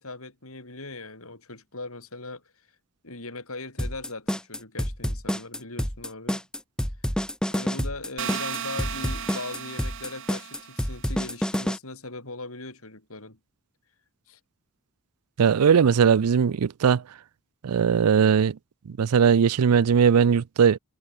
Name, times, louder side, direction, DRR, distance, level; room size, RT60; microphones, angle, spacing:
voice 1, 0.0-2.4 3.0-6.4 7.5-13.4 14.3-14.4, left 2 dB, 70° left, 6.1 m, -39 dB
sound 1, 3.8-11.8, equal, 5° left, 1.1 m, -28 dB
sound 2, 8.2-11.1, right 8 dB, 60° right, 2.1 m, -35 dB
voice 2, 15.4-17.0 17.6-18.6 19.0-20.8, right 7 dB, 85° right, 0.4 m, -19 dB
head